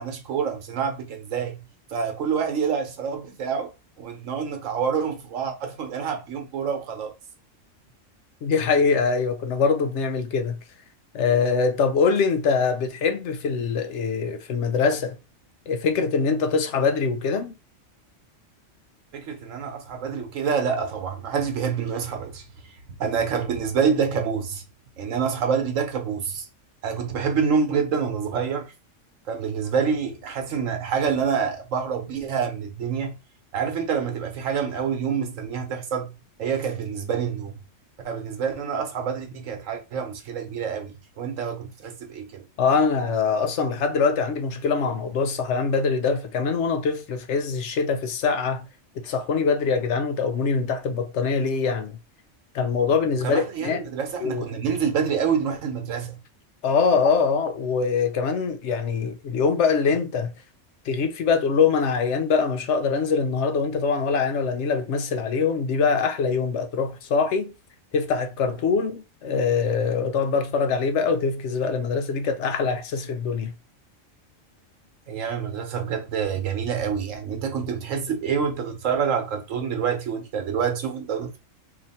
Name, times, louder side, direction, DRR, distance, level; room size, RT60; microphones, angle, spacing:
voice 1, 0.0-1.6 1.9-3.7 4.0-7.1 19.1-24.6 25.0-26.5 26.8-28.7 29.3-33.2 33.5-36.1 36.4-37.6 38.0-42.5 53.2-56.2 75.1-81.4, right 6 dB, 80° right, 1.2 m, -27 dB
voice 2, 8.4-10.6 11.1-15.2 15.7-17.5 42.6-48.7 49.0-52.0 52.5-53.8 54.2-54.5 56.6-60.3 60.9-67.5 67.9-73.5, left 5 dB, 70° left, 0.9 m, -23 dB
2.9 x 2.4 x 4.1 m
omnidirectional pair, 1.3 m